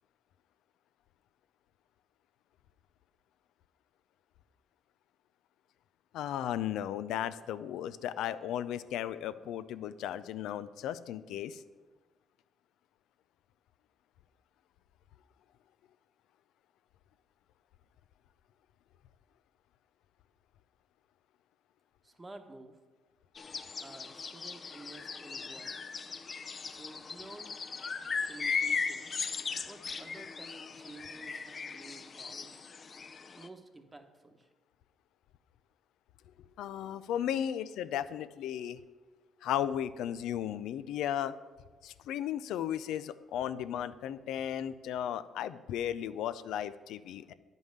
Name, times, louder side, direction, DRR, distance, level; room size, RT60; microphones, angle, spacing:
voice 1, 6.1-11.6 36.6-38.8 39.4-41.4 41.8-47.3, left 10 dB, 85° left, 13 dB, 0.4 m, -35 dB
voice 2, 22.0-22.8 23.8-25.8 26.6-27.6 28.2-29.1 29.6-32.6 33.3-34.5, right 2 dB, 20° right, 7 dB, 1.1 m, -51 dB
sound 1, 23.4-33.5, left 5 dB, 40° left, 0.6 m, -38 dB
9.9 x 5.4 x 7.8 m, 1.3 s
cardioid pair, 90°, 0 cm